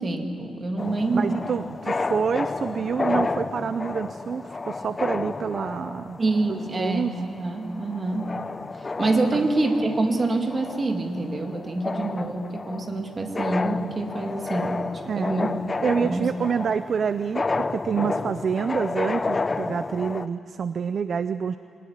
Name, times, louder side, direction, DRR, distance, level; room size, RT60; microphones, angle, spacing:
voice 1, 0.0-1.5 6.2-8.3 9.0-14.8 15.2-15.6 16.0-16.3, right 2 dB, 25° right, 3 dB, 2.1 m, -26 dB
sound 1, 0.8-20.3, left 3 dB, 20° left, 0.5 m, -31 dB
voice 2, 1.1-6.2 6.5-7.1 9.3-9.5 15.1-15.3 15.8-21.6, right 6 dB, 40° right, 12 dB, 0.5 m, -27 dB
23.0 x 19.5 x 10.0 m, 2.4 s
wide cardioid pair, 175°, 0 cm